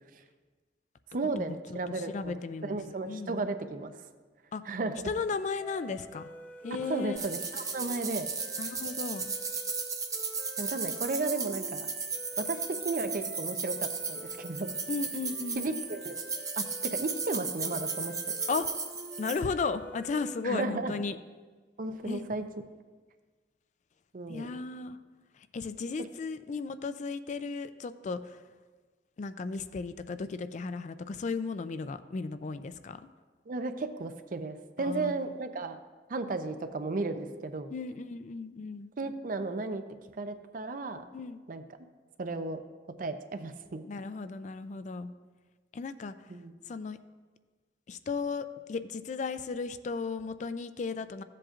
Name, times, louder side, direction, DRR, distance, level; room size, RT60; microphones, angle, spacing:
voice 1, 1.1-3.9 4.6-5.1 6.9-8.3 10.6-11.9 12.4-14.7 15.5-16.2 16.6-18.2 20.4-20.9 21.8-22.4 24.1-24.6 33.5-35.8 36.1-37.7 39.0-39.8 40.2-41.0 41.5-41.6 42.2-42.6 43.0-43.9 46.3-46.5, right 3 dB, 50° right, 9 dB, 0.5 m, -34 dB
voice 2, 2.1-2.8 3.1-3.4 4.5-4.6 5.1-6.3 6.6-7.2 8.6-9.3 14.9-15.7 18.5-18.7 19.2-21.2 22.0-22.2 24.3-25.0 25.5-28.4 29.2-33.0 34.8-35.1 37.7-38.9 41.1-41.4 43.9-45.1 45.7-46.1 46.7-47.0 47.9-51.2, left 4 dB, 45° left, 12 dB, 0.3 m, -35 dB
sound 1, 5.6-20.7, right 1 dB, 10° left, 0.7 m, -48 dB
sound 2, 7.2-19.4, right 4 dB, 20° right, 0.8 m, -35 dB
15.0 x 7.6 x 2.5 m, 1.4 s
head